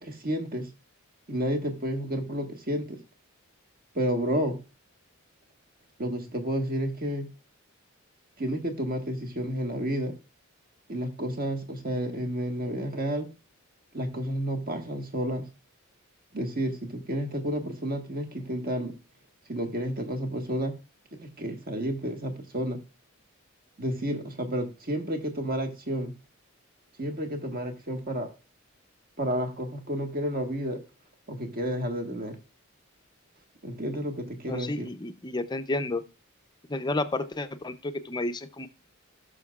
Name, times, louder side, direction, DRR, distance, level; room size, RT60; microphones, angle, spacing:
voice 1, 0.0-0.7 1.3-3.0 3.9-4.6 6.0-7.3 8.4-10.1 10.9-13.3 13.9-15.5 16.3-18.9 19.5-20.8 21.1-22.8 23.8-26.1 27.0-28.3 29.2-30.8 31.3-32.4 33.6-34.9, equal, 45° right, 4 dB, 1.6 m, -31 dB
voice 2, 34.5-36.0 36.7-38.7, left 2 dB, 20° left, 9 dB, 0.6 m, -31 dB
18.0 x 6.4 x 2.4 m, 0.31 s
head